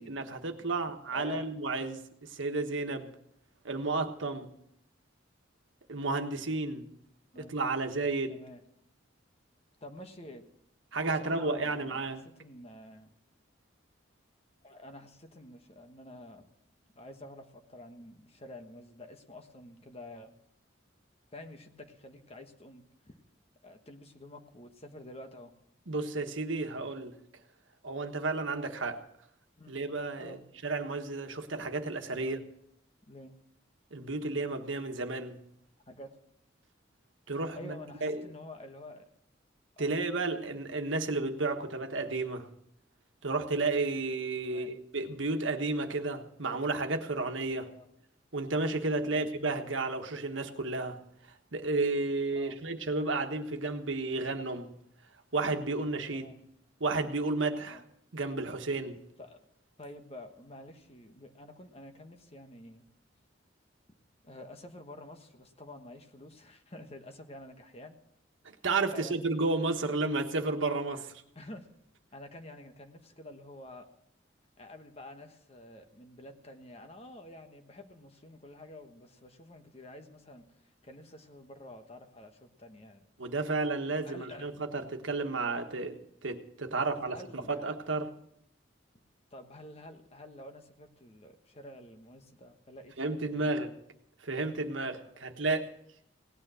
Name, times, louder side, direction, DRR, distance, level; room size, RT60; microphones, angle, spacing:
voice 1, 0.0-3.1 3.6-4.5 5.9-6.9 7.3-8.4 10.9-12.2 25.9-27.2 27.8-29.0 29.7-30.4 30.6-32.4 33.9-35.4 37.3-37.7 38.0-38.2 39.8-42.5 43.2-47.7 48.3-51.0 51.5-54.7 55.3-56.3 56.8-57.8 58.1-59.0 68.4-71.2 83.2-88.1 93.0-93.7 94.2-95.7, right 3 dB, 80° right, 5 dB, 1.4 m, -32 dB
voice 2, 1.1-1.5 3.9-4.0 7.3-7.5 8.3-8.6 9.8-10.5 11.1-13.1 14.6-16.5 16.9-20.3 21.3-23.1 23.6-25.5 29.6-29.8 30.2-30.4 32.1-32.4 33.1-33.3 35.9-36.1 37.5-39.0 39.8-39.9 44.4-44.7 47.7-47.9 49.0-49.3 52.3-52.6 56.1-56.4 57.7-57.8 59.2-59.5 59.8-62.8 64.2-68.0 68.9-69.5 71.3-71.7 72.1-73.9 74.6-80.6 80.8-83.1 84.0-84.4 86.8-87.7 89.3-93.6, left 1 dB, 30° left, 6 dB, 1.3 m, -49 dB
17.5 x 9.5 x 6.3 m, 0.73 s
head